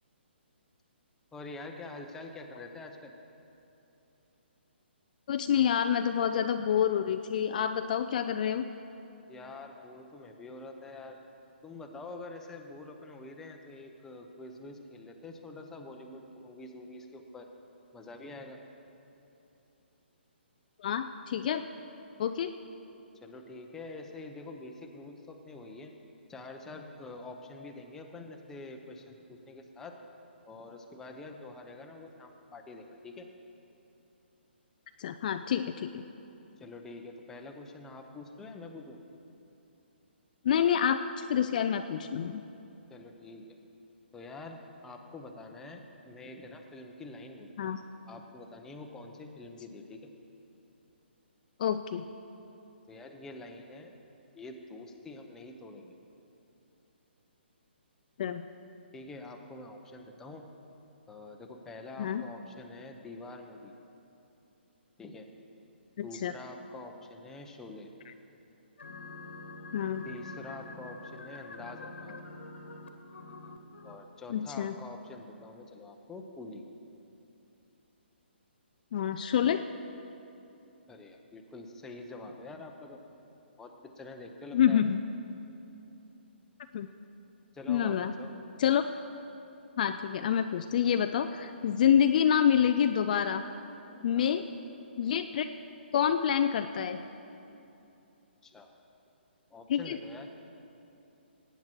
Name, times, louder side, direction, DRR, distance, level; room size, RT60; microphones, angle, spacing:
voice 1, 1.3-3.1 9.3-11.2 11.6-17.5 17.9-18.6 23.2-25.9 26.3-30.0 30.5-33.3 36.6-39.0 42.9-43.5 44.1-47.7 48.1-50.0 52.9-53.9 54.3-55.9 58.9-60.5 61.1-63.7 65.0-65.3 66.0-67.9 70.0-72.2 73.8-76.6 80.9-83.0 83.6-84.8 87.5-88.3 94.1-94.5 98.4-98.7 99.5-100.3, left 2 dB, 10° left, 3 dB, 0.8 m, -46 dB
voice 2, 5.3-8.7 20.8-21.6 22.2-22.5 35.0-36.0 40.4-42.4 47.6-47.8 51.6-52.0 58.2-58.4 62.0-62.3 66.0-66.3 69.7-70.1 74.3-74.7 78.9-79.6 84.5-85.0 86.7-86.9 87.7-88.1 88.6-88.8 89.8-93.4 94.0-94.4 95.0-95.5 95.9-97.0 99.7-100.0, left 9 dB, 45° left, 8 dB, 0.4 m, -27 dB
sound 1, 68.8-74.0, left 3 dB, 85° left, 1.4 m, -46 dB
17.5 x 9.2 x 4.5 m, 2.9 s
hypercardioid pair, 150°, 6 cm